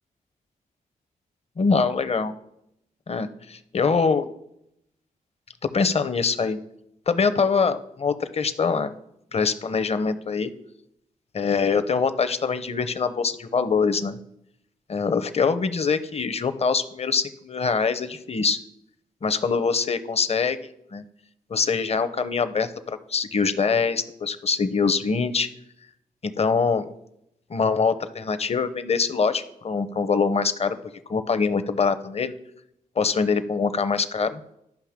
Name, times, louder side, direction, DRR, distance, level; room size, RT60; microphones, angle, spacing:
voice 1, 1.6-2.3 3.1-4.3 5.7-6.6 7.1-9.0 9.3-10.5 11.3-14.2 14.9-18.6 19.2-20.6 20.9-21.0 21.5-25.5 26.2-26.9 27.5-30.8 31.1-32.3 33.0-34.4, left 5 dB, 40° left, 12 dB, 0.7 m, -24 dB
11.5 x 5.5 x 3.6 m, 0.79 s
cardioid pair, 55°, 15 cm